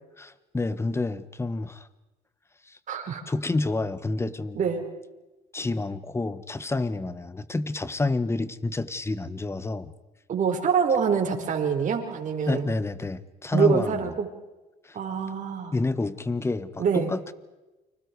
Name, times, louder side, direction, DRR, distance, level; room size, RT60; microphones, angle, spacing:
voice 1, 0.2-1.9 2.7-2.8 3.3-4.6 5.5-9.9 12.4-14.1 14.8-15.0 15.7-17.3, left 2 dB, 15° left, 14 dB, 1.4 m, -29 dB
voice 2, 2.9-3.2 4.5-4.9 10.3-12.7 13.5-14.3 14.9-15.7 16.8-17.1, right 6 dB, 50° right, 3 dB, 5.2 m, -25 dB
30.0 x 26.0 x 4.9 m, 1.1 s
cardioid pair, 110°, 17 cm